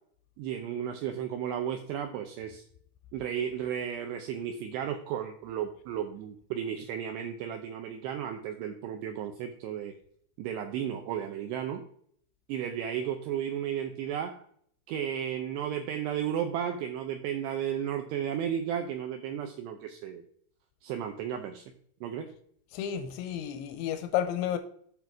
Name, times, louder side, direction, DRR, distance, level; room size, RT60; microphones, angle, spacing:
voice 1, 0.4-2.7 3.1-9.9 10.4-11.8 12.5-14.4 14.9-20.2 20.8-21.6 22.0-22.3, right 9 dB, 85° right, 5 dB, 2.4 m, -34 dB
voice 2, 22.7-24.6, left 10 dB, 85° left, 10 dB, 2.8 m, -31 dB
9.1 x 5.8 x 4.7 m, 0.63 s
omnidirectional pair, 5.7 m